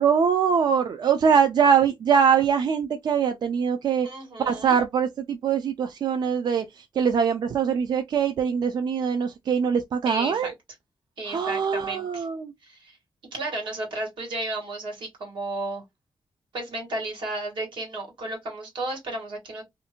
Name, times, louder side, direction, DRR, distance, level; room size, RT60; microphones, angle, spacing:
voice 1, 0.0-4.1 4.4-10.5 11.3-12.5, right 7 dB, 65° right, 0.4 m, -23 dB
voice 2, 4.0-4.8 10.0-10.5 11.2-12.3 12.6-13.0 13.3-15.8 16.5-19.6, right 2 dB, 90° right, 1.4 m, -33 dB
2.5 x 2.4 x 2.8 m
wide cardioid pair, 135°, 8 cm